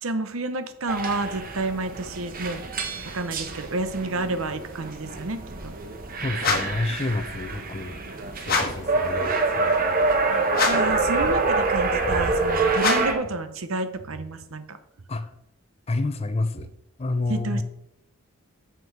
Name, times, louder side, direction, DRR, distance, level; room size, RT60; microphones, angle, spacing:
voice 1, 0.0-2.6 3.1-5.7 10.3-14.8 17.3-17.6, right 2 dB, 70° right, 10 dB, 0.9 m, -30 dB
sound 1, 0.9-13.1, right 3 dB, 40° right, 1.0 m, -26 dB
voice 2, 6.2-8.0 8.4-9.8 15.1-15.3 15.9-16.7 17.0-17.6, left 2 dB, 30° left, 11 dB, 0.5 m, -29 dB
sound 2, 6.4-6.9 8.4-8.9 10.5-11.0 12.8-13.3, left 4 dB, 45° left, 1.3 m, -25 dB
8.1 x 6.2 x 4.6 m, 0.84 s
head